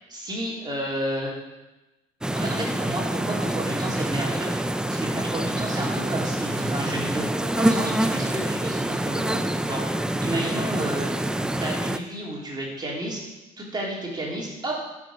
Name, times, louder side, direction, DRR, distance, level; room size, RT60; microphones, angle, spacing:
voice 1, 0.1-1.3 2.3-4.5 4.9-9.8 10.2-11.1 11.6-13.2 13.6-14.8, right 1 dB, 25° right, -3 dB, 3.3 m, -31 dB
sound 1, 2.2-12.0, right 1 dB, 5° right, 0.5 m, -26 dB
13.0 x 6.2 x 5.7 m, 1.1 s
cardioid pair, 110°, 17 cm